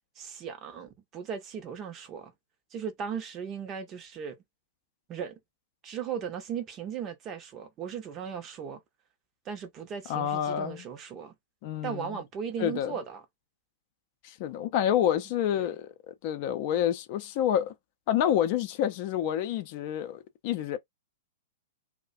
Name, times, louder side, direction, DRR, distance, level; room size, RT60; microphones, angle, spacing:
voice 1, 0.2-2.3 2.7-4.4 5.1-5.4 5.8-8.8 9.4-11.3 11.8-13.2 15.5-15.7, right 7 dB, 30° right, 0.6 m, -37 dB
voice 2, 10.1-10.8 11.6-12.2 12.6-12.9 14.2-17.7 18.1-20.8, left 10 dB, 45° left, 0.5 m, -28 dB
2.3 x 2.1 x 2.5 m
figure-of-eight pair, 105°, 0 cm